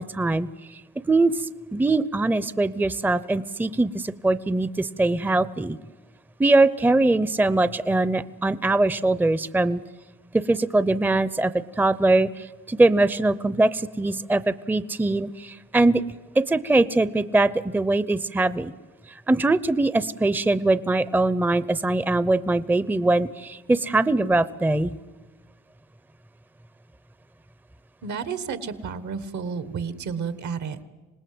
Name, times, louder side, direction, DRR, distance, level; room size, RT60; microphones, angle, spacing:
voice 1, 0.0-5.8 6.4-9.8 10.3-16.0 16.3-18.7 19.3-24.9, right 2 dB, 5° right, 16 dB, 0.6 m, -22 dB
voice 2, 28.0-30.8, right 6 dB, 70° right, 13 dB, 1.6 m, -31 dB
26.0 x 19.0 x 7.8 m, 1.3 s
cardioid pair, 90°, 30 cm